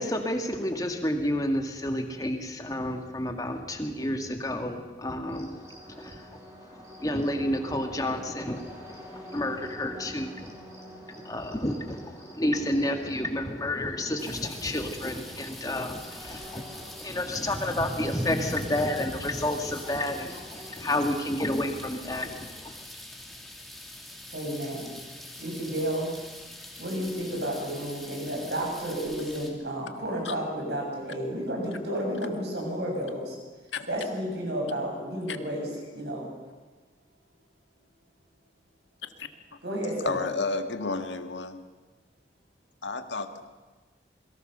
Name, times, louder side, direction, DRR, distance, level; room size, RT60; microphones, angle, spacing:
voice 1, 0.0-5.6 5.9-22.8, left 1 dB, 20° left, 4 dB, 2.1 m, -31 dB
sound 1, 5.2-20.7, equal, 15° right, 4.7 m, -48 dB
sound 2, 14.2-29.5, equal, ahead, 2.9 m, -41 dB
voice 2, 24.3-24.9 25.4-26.1 26.8-33.4 33.9-35.7 35.9-36.3 39.6-40.2, equal, 65° right, 1 dB, 7.5 m, -31 dB
voice 3, 40.0-41.6 42.8-43.5, left 3 dB, 85° left, 7 dB, 1.8 m, -31 dB
27.5 x 22.0 x 6.8 m, 1.3 s
head